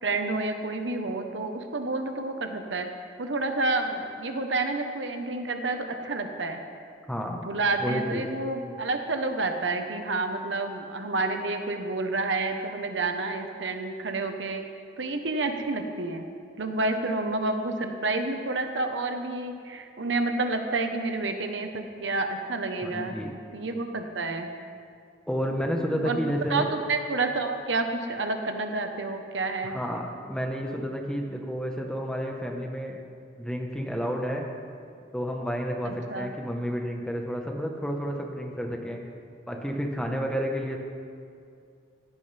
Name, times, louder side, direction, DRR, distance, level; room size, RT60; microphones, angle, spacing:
voice 1, 0.0-2.9 3.2-6.6 7.3-14.6 15.0-16.3 16.6-23.1 23.5-24.5 26.0-26.2 26.5-29.8 35.8-36.3, right 3 dB, 90° right, 5 dB, 1.2 m, -29 dB
voice 2, 7.1-7.4 7.8-8.2 22.8-23.3 25.3-26.7 29.6-33.0 33.4-34.4 35.1-39.0 39.5-40.8, equal, 5° left, 1 dB, 1.2 m, -30 dB
16.5 x 15.5 x 3.5 m, 2.4 s
head